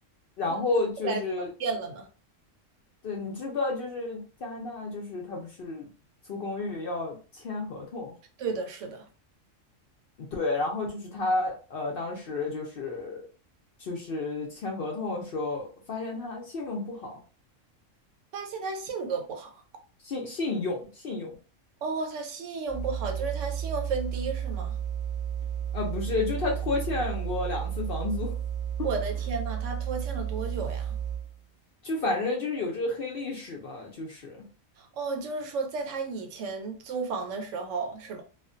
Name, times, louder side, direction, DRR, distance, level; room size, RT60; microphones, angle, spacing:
voice 1, 0.4-1.5 3.0-5.9 6.3-8.1 10.2-13.2 13.8-17.2 20.0-21.3 25.7-28.3 31.8-34.4, left 3 dB, 60° left, 0.6 m, -31 dB
voice 2, 1.6-2.1 8.4-9.1 18.3-19.5 21.8-24.8 28.8-31.0 34.8-38.2, right 4 dB, 70° right, 0.9 m, -33 dB
sound 1, 22.7-31.4, right 9 dB, 5° left, 0.9 m, -32 dB
2.4 x 2.1 x 2.5 m
omnidirectional pair, 1.4 m